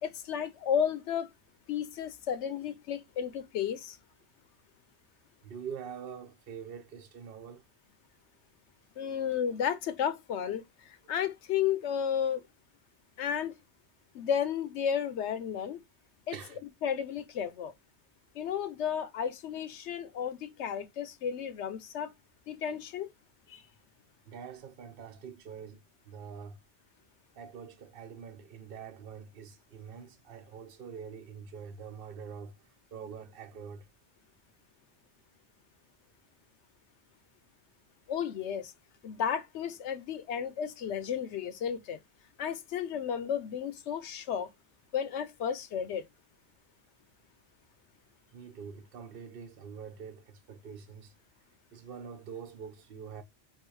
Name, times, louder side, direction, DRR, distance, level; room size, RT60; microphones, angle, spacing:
voice 1, 0.0-1.3 1.7-4.0 9.0-12.4 13.2-13.6 14.1-15.8 16.3-16.4 16.8-17.7 18.3-22.1 22.5-23.1 23.5-23.7 38.1-38.7 39.0-42.0 42.4-44.5 44.9-46.0, left 8 dB, 85° left, 0.9 m, -33 dB
voice 2, 5.4-7.6 16.3-16.6 24.3-26.6 27.4-32.6 32.9-33.9 48.3-51.1 51.7-53.2, right 7 dB, 60° right, 0.8 m, -45 dB
3.7 x 2.7 x 4.6 m
omnidirectional pair, 1.1 m